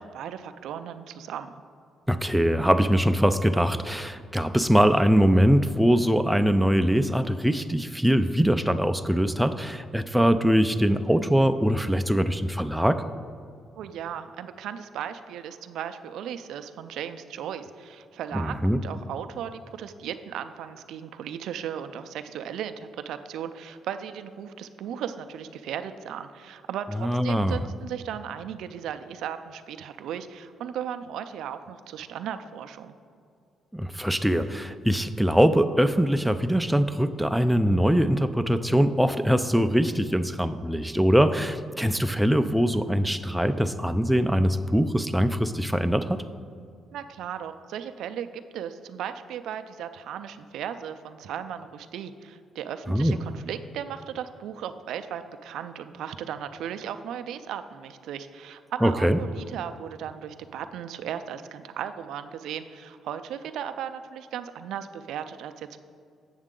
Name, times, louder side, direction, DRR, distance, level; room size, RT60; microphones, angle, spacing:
voice 1, 0.0-1.5 13.8-33.0 46.9-65.8, right 9 dB, 80° right, 10 dB, 0.4 m, -36 dB
voice 2, 2.1-13.0 18.3-18.8 27.0-27.6 33.7-46.2 52.9-53.2 58.8-59.2, equal, ahead, 9 dB, 0.3 m, -22 dB
7.5 x 7.1 x 3.7 m, 2.4 s
cardioid pair, 90°, 0 cm